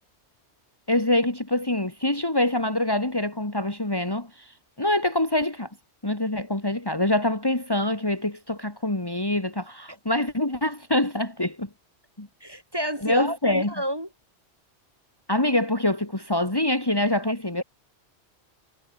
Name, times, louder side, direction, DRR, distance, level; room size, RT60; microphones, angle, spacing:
voice 1, 0.9-5.7 6.0-11.7 12.2-12.3 13.0-13.7 15.3-17.6, left 1 dB, 20° left, 2.6 m, -25 dB
voice 2, 12.4-14.1, equal, 20° right, 7.1 m, -30 dB
omnidirectional pair, 1.1 m